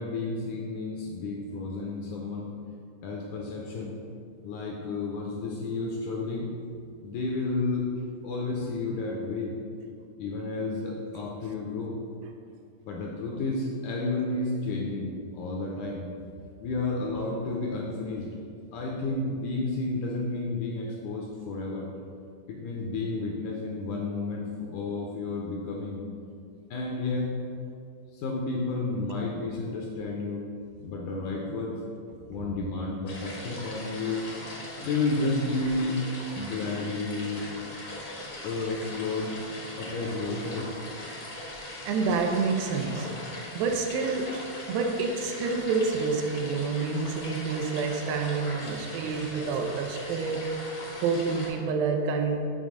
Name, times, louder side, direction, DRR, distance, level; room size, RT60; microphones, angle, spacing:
voice 1, 0.0-2.5 3.0-3.9 4.4-6.5 7.0-7.9 8.2-9.5 10.2-12.0 12.8-16.0 16.6-18.3 18.7-21.9 22.5-26.0 26.7-27.4 28.1-30.4 30.8-31.8 32.3-34.2 34.8-36.0 36.4-37.5 38.2-39.3 39.8-40.7, left 3 dB, 80° left, -1 dB, 1.9 m, -31 dB
sound 1, 33.1-51.5, left 1 dB, 60° left, 0.9 m, -40 dB
voice 2, 41.9-50.5 51.0-52.4, right 4 dB, 85° right, 4 dB, 2.5 m, -28 dB
7.1 x 3.7 x 6.3 m, 2.3 s
omnidirectional pair, 4.2 m